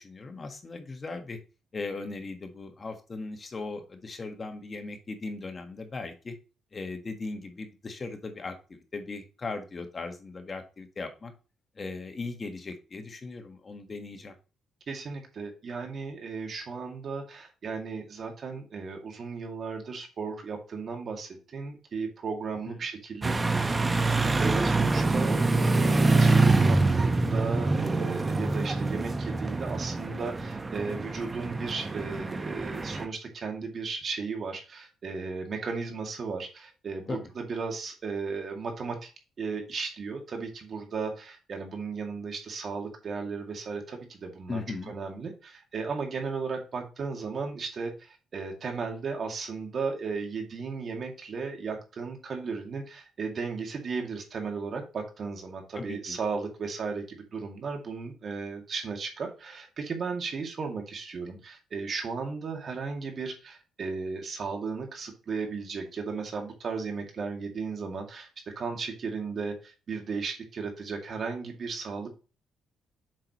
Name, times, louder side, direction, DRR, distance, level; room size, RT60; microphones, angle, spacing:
voice 1, 0.0-1.4 1.7-6.3 6.7-11.3 11.8-14.3 22.7-22.8 37.1-37.2 44.5-44.9 55.7-56.2, left 3 dB, 35° left, 5 dB, 1.5 m, -38 dB
voice 2, 14.9-25.4 25.7-39.1 39.4-68.3 68.6-72.1, right 4 dB, 50° right, 3 dB, 2.3 m, -35 dB
sound 1, 23.2-33.1, right 3 dB, 25° right, 1.0 m, -25 dB
7.6 x 5.9 x 3.0 m, 0.32 s
cardioid pair, 90°, 0 cm